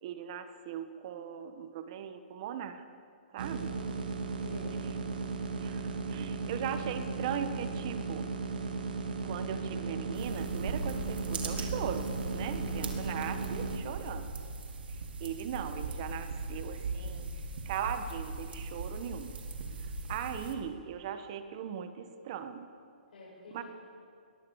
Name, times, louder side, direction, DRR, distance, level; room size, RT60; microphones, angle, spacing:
voice 1, 0.0-2.8 3.3-3.7 4.7-5.0 5.6-8.3 9.2-14.3 14.9-17.3 17.6-19.3 20.1-22.7 23.5-23.6, right 8 dB, 35° right, 10 dB, 1.2 m, -39 dB
voice 2, 3.4-3.9 4.4-4.8 23.1-23.6, left 2 dB, 70° left, -8 dB, 7.7 m, -48 dB
sound 1, 3.4-13.8, right 4 dB, 65° right, 2.4 m, -36 dB
sound 2, 10.1-20.6, right 3 dB, 80° right, 3.3 m, -39 dB
21.0 x 20.5 x 7.1 m, 2.3 s
hypercardioid pair, 165°, 5 cm